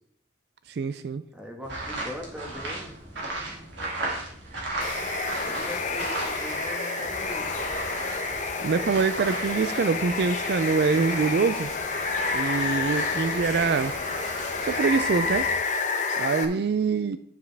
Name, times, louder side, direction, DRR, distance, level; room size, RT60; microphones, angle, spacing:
voice 1, 0.7-1.2 8.6-11.7 12.3-13.9 14.6-15.5 16.2-17.2, right 5 dB, 60° right, 12 dB, 0.3 m, -25 dB
voice 2, 1.3-2.9 5.4-7.8, left 1 dB, 5° right, 1 dB, 1.4 m, -40 dB
sound 1, 1.6-6.7 6.9-15.5, right 2 dB, 80° right, 2.6 m, -37 dB
sound 2, 3.8-15.4, right 3 dB, 40° right, 1.2 m, -39 dB
Water, 4.8-16.5, left 4 dB, 40° left, 0.8 m, -30 dB
9.3 x 7.3 x 3.3 m, 0.64 s
head